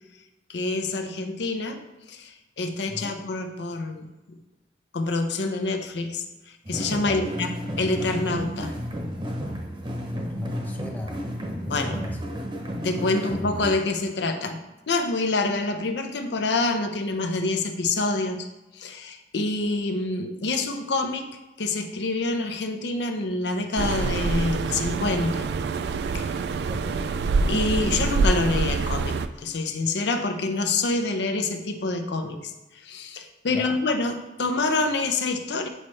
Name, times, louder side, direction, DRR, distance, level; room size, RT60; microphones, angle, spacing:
voice 1, 0.5-1.8 2.1-4.4 4.9-7.5 7.8-8.7 11.7-12.0 12.8-14.6 14.9-18.5 18.7-25.5 26.1-26.4 27.5-35.7, left 3 dB, 75° left, 6 dB, 0.6 m, -27 dB
voice 2, 2.9-3.2 7.0-7.3 9.9-11.2 11.6-12.2 26.7-27.0 33.5-33.7, left 1 dB, 10° left, 1 dB, 0.5 m, -37 dB
sound 1, 6.7-13.7, equal, 25° right, 0.8 m, -32 dB
sound 2, 23.8-29.3, right 4 dB, 70° right, 0.3 m, -25 dB
7.9 x 4.2 x 3.2 m, 1.0 s
head